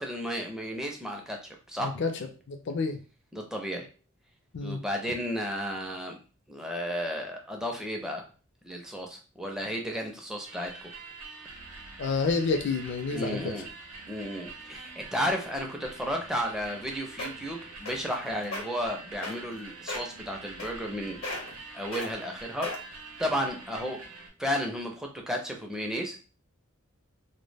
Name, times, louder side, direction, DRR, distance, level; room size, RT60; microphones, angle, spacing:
voice 1, 0.0-1.4 1.7-1.9 3.3-3.9 4.6-6.2 6.5-8.2 8.6-10.7 13.1-13.7 14.1-21.2 21.7-22.7 23.2-24.0 24.4-26.2, equal, 5° right, 1 dB, 0.4 m, -33 dB
voice 2, 1.8-3.0 4.5-4.8 12.0-13.5 23.8-23.9, left 4 dB, 60° left, 5 dB, 0.4 m, -29 dB
sound 1, 10.4-24.3, right 3 dB, 90° right, 0.7 m, -45 dB
sound 2, 16.8-16.9 17.2-17.5 17.9-18.1 18.4-18.6 19.2-19.6 19.9-20.1 20.6-21.0 21.2-21.6 21.9-22.1 22.6-23.0 23.6-23.7, left 2 dB, 80° left, 0.8 m, -35 dB
2.1 x 2.1 x 3.3 m, 0.35 s
head